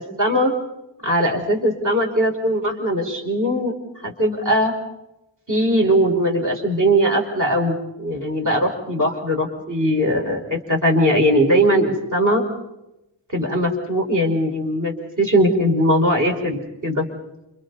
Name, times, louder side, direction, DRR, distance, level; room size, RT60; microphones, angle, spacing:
voice 1, 0.2-0.5 1.0-3.7 4.0-4.7 5.5-12.4 13.3-17.0, equal, 40° right, 1 dB, 5.0 m, -20 dB
29.5 x 28.0 x 4.1 m, 0.92 s
wide cardioid pair, 105°, 45 cm